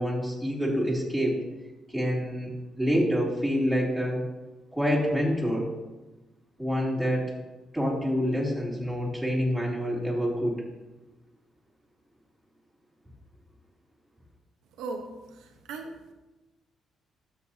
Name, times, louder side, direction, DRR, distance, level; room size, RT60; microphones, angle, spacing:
voice 1, 0.0-1.4 1.9-4.2 4.7-5.7 6.6-7.3 7.7-10.6, equal, ahead, -5 dB, 3.0 m, -27 dB
voice 2, 14.7-16.1, right 3 dB, 90° right, 3 dB, 0.9 m, -39 dB
12.5 x 7.1 x 2.8 m, 1.1 s
cardioid pair, 90°, 0 cm